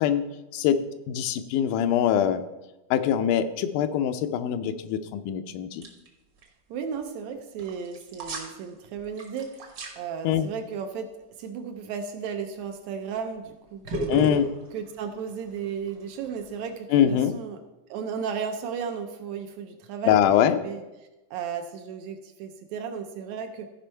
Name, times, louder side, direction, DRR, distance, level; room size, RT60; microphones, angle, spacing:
voice 1, 0.0-2.4 2.9-5.8 10.2-10.5 14.1-14.5 16.9-17.4 20.0-20.6, left 9 dB, 85° left, 10 dB, 2.2 m, -23 dB
sound 1, 5.8-6.1 6.4-6.5 7.6-8.6 9.0-9.9 12.6-12.9 13.8-16.7, right 2 dB, 50° right, 1.3 m, -34 dB
voice 2, 6.7-11.1 11.4-14.1 14.7-17.6 17.9-20.8 21.3-23.7, right 6 dB, 75° right, 5 dB, 1.8 m, -34 dB
14.5 x 5.3 x 4.5 m, 1.0 s
omnidirectional pair, 3.6 m